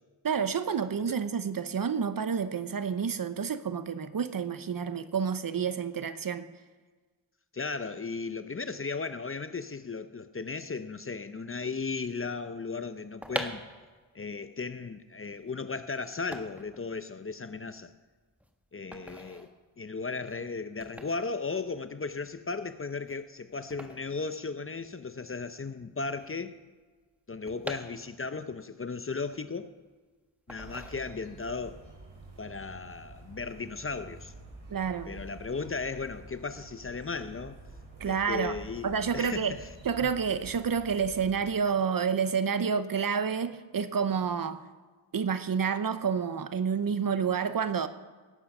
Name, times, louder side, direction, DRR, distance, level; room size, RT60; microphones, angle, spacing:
voice 1, 0.2-6.5 34.7-35.1 38.0-38.6 38.8-39.6 39.8-44.6 45.1-47.9, right 6 dB, 45° right, 0.8 m, -29 dB
voice 2, 7.5-13.6 14.1-17.9 18.7-19.5 19.8-26.6 27.3-29.7 30.5-31.8 32.4-34.3 35.1-37.6 38.0-39.7 40.0-40.1, left 4 dB, 30° left, 0.6 m, -36 dB
sound 1, 13.0-25.1 25.4-25.5 25.6-28.5 28.9-29.9 30.5-31.5 31.8-32.1, equal, 5° right, 1.3 m, -44 dB
sound 2, 30.5-41.6, right 2 dB, 75° right, 4.1 m, -49 dB
18.5 x 8.5 x 5.4 m
cardioid pair, 80°, 47 cm